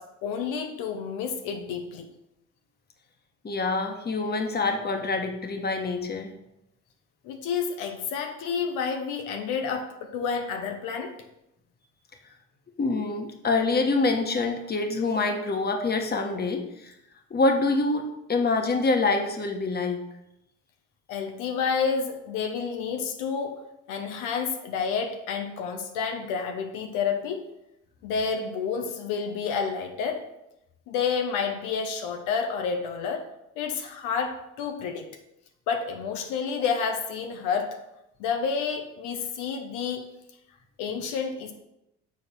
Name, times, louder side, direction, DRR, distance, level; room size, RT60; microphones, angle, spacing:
voice 1, 0.0-2.1 7.2-11.2 21.1-23.6 23.9-27.4 28.0-30.2 30.9-33.2 33.6-35.1 35.7-37.8 38.2-40.1 40.8-41.5, left 6 dB, 90° left, 5 dB, 0.8 m, -29 dB
voice 2, 3.4-6.3 12.8-16.9 17.3-20.0, left 3 dB, 30° left, 4 dB, 1.2 m, -26 dB
7.2 x 4.3 x 4.4 m, 0.85 s
supercardioid pair, 85°, 30 cm